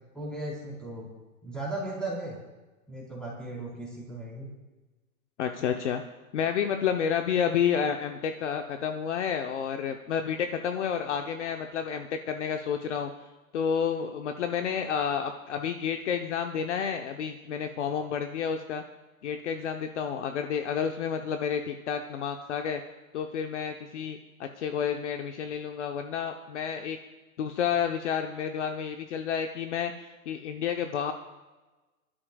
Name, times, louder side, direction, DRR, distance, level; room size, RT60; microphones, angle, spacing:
voice 1, 0.1-1.1 1.4-2.4 2.9-4.5, right 2 dB, ahead, -6 dB, 4.0 m, -36 dB
voice 2, 5.4-6.0 6.3-13.1 13.5-18.8 19.2-22.8 23.1-27.0 27.4-31.1, left 7 dB, 55° left, 5 dB, 0.9 m, -30 dB
24.5 x 12.5 x 2.3 m, 1.2 s
hypercardioid pair, 160°, 43 cm